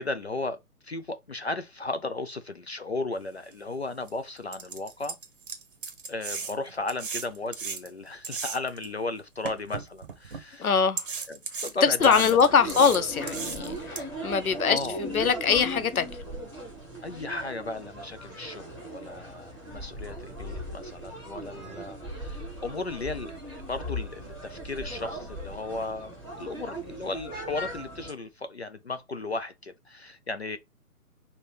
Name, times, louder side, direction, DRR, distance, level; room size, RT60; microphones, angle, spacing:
voice 1, 0.0-5.2 6.1-10.7 11.3-12.4 12.6-12.9 14.7-15.0 17.0-30.6, left 2 dB, 45° left, 0.4 m, -35 dB
sound 1, 3.5-3.6 4.1-4.2 4.5-8.9 9.4-10.4 11.0-14.0, right 5 dB, 35° right, 0.8 m, -36 dB
voice 2, 10.6-11.1 11.8-16.2, left 6 dB, 65° left, 0.8 m, -23 dB
sound 2, 12.0-28.1, equal, 5° left, 1.0 m, -38 dB
5.1 x 2.8 x 3.3 m
figure-of-eight pair, 145°, 46 cm